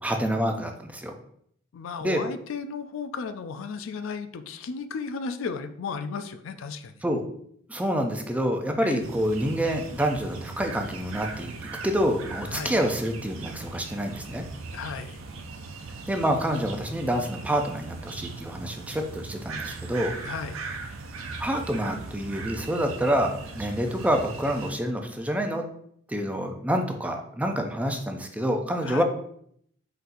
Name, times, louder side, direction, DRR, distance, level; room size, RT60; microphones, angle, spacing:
voice 1, 0.0-1.1 2.0-2.2 7.0-7.2 7.7-14.5 16.1-20.1 21.4-25.7 26.1-29.0, equal, 5° right, 4 dB, 0.4 m, -27 dB
voice 2, 1.7-6.9 8.8-9.1 12.5-12.8 14.7-15.2 20.2-20.6 28.8-29.0, left 5 dB, 70° left, 10 dB, 0.4 m, -34 dB
sound 1, 9.0-24.7, right 3 dB, 80° right, 0.5 m, -39 dB
4.1 x 3.9 x 2.6 m, 0.67 s
head